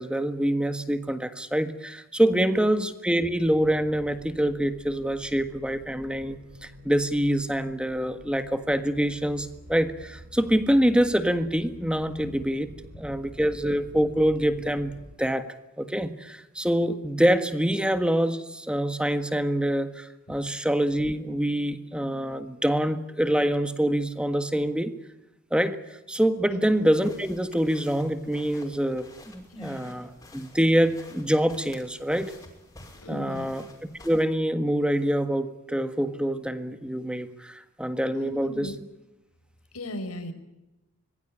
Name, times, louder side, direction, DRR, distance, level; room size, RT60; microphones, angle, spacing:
voice 1, 0.0-12.7 13.0-14.9 15.2-15.5 15.8-24.9 25.5-25.8 26.1-32.3 33.1-33.7 34.0-38.7, equal, 5° right, 10 dB, 1.5 m, -25 dB
voice 2, 2.3-2.7 20.3-20.4 26.5-26.7 29.5-29.9 33.0-33.5 38.1-38.7 39.7-40.3, left 1 dB, 90° left, 8 dB, 4.9 m, -38 dB
sound 1, 3.3-15.2, equal, 50° right, 4.6 m, -48 dB
sound 2, 26.9-34.2, left 2 dB, 15° left, 5.6 m, -51 dB
25.0 x 21.5 x 8.7 m, 0.97 s
head